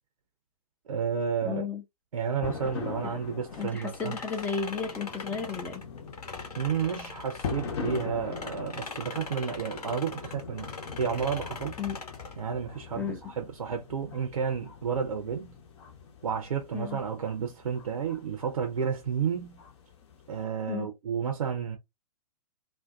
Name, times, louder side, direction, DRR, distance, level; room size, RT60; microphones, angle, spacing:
voice 1, 0.9-1.6 2.1-4.2 6.6-10.7 11.0-11.8 12.4-15.5 16.2-19.6 20.3-21.8, right 7 dB, 70° right, 0.6 m, -31 dB
voice 2, 1.4-1.8 3.6-5.8 11.8-12.0 13.0-13.2 16.7-17.0 20.7-20.9, left 6 dB, 10° left, 0.5 m, -33 dB
sound 1, 2.4-20.4, left 6 dB, 50° left, 0.8 m, -42 dB
sound 2, 3.5-8.0 8.3-12.4, left 3 dB, 80° left, 1.1 m, -41 dB
2.5 x 2.1 x 2.4 m
figure-of-eight pair, 115°, 20 cm